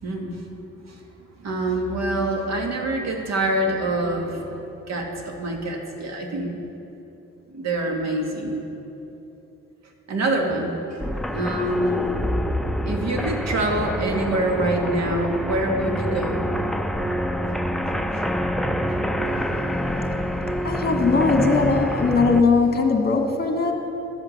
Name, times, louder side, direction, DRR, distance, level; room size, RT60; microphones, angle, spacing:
voice 1, 0.0-0.4 0.9-1.0 1.4-6.6 7.5-8.6 10.1-10.7 11.3-12.1 12.9-16.4, right 1 dB, 60° right, 2 dB, 1.9 m, -25 dB
sound 1, 11.0-22.4, equal, ahead, 0.5 m, -26 dB
voice 2, 20.6-23.7, left 4 dB, 30° left, 2 dB, 1.8 m, -20 dB
12.0 x 8.1 x 6.6 m, 2.9 s
cardioid pair, 90°, 30 cm